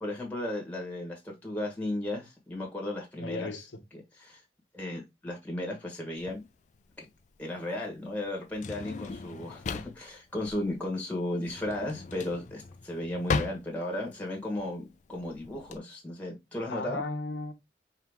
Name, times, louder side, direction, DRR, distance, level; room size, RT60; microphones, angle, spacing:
voice 1, 0.0-3.5 3.9-4.4 4.7-6.4 7.0-7.1 7.4-17.0, left 1 dB, 10° left, 1.2 m, -35 dB
voice 2, 3.2-3.8 16.7-17.5, left 3 dB, 85° left, 0.9 m, -35 dB
Drawer open or close, 6.2-15.8, left 4 dB, 40° left, 0.4 m, -38 dB
4.2 x 2.8 x 3.5 m
head